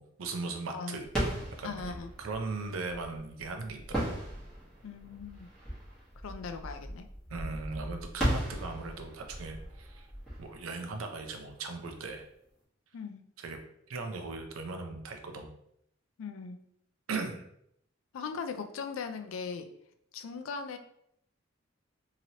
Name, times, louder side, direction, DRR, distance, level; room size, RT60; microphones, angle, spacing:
voice 1, 0.0-4.2 7.3-10.1 10.4-12.2 13.4-13.6 13.9-15.5 17.1-17.4, right 3 dB, 85° right, 5 dB, 0.5 m, -38 dB
sound 1, 1.0-11.6, right 1 dB, 5° left, 1.1 m, -37 dB
voice 2, 1.6-2.1 4.8-5.5 6.2-7.1 12.9-13.3 16.2-16.6 18.1-19.7 20.1-20.8, left 5 dB, 75° left, 8 dB, 0.4 m, -39 dB
2.9 x 2.9 x 2.7 m, 0.73 s
head